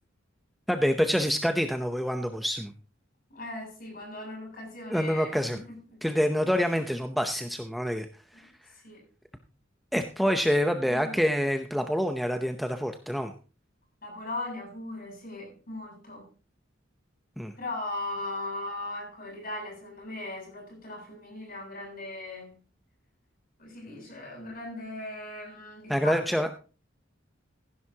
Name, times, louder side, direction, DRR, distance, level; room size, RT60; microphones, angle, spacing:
voice 1, 0.7-2.7 4.9-5.6 6.0-8.1 9.9-13.3 17.4-17.5 25.9-26.5, equal, ahead, 6 dB, 0.7 m, -26 dB
voice 2, 3.3-5.8 6.1-6.2 8.3-9.1 10.7-11.2 14.0-16.3 17.6-22.6 23.6-26.5, left 2 dB, 50° left, 0 dB, 7.6 m, -38 dB
15.5 x 10.5 x 2.9 m, 0.36 s
head